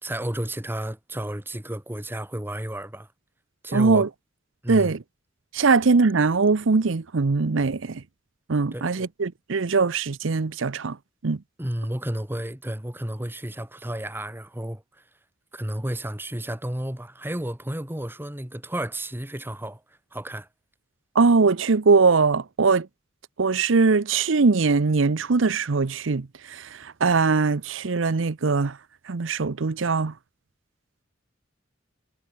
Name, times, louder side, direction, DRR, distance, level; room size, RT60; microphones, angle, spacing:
voice 1, 0.0-3.1 3.6-4.1 4.6-4.9 8.7-9.0 11.6-14.8 15.5-19.8 20.1-20.5, right 1 dB, 10° right, 1.6 m, -32 dB
voice 2, 3.7-4.1 4.7-5.0 5.5-8.0 8.5-11.0 11.2-11.4 21.1-22.9 23.4-28.8 29.1-30.1, right 4 dB, 85° right, 0.7 m, -21 dB
head